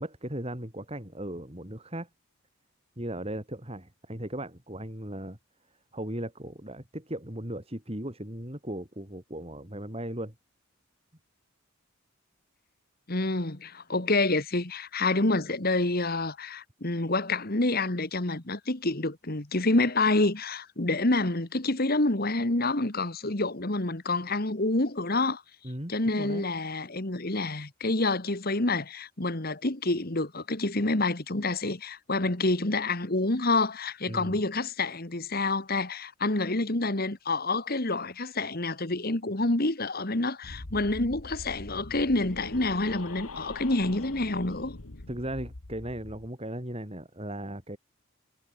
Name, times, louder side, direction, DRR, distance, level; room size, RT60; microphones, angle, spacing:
voice 1, 0.0-2.1 3.0-5.4 5.9-10.3 25.6-26.4 34.1-34.4 45.1-47.8, right 1 dB, 25° right, 3.6 m, -37 dB
voice 2, 13.1-25.4 25.9-44.7, left 2 dB, 45° left, 1.8 m, -28 dB
sound 1, 40.4-46.3, left 2 dB, 75° left, 1.8 m, -43 dB
head